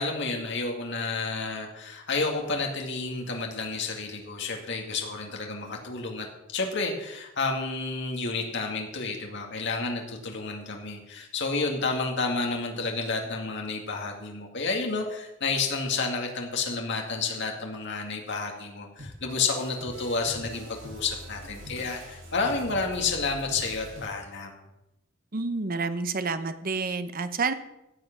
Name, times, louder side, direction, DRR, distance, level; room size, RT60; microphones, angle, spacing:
voice 1, 0.0-24.6, left 4 dB, 60° left, 2 dB, 2.3 m, -30 dB
sound 1, 19.0-24.0, equal, 80° right, 6.3 m, -43 dB
voice 2, 25.3-27.5, right 4 dB, 45° right, 10 dB, 0.9 m, -29 dB
15.5 x 7.7 x 6.0 m, 0.91 s
head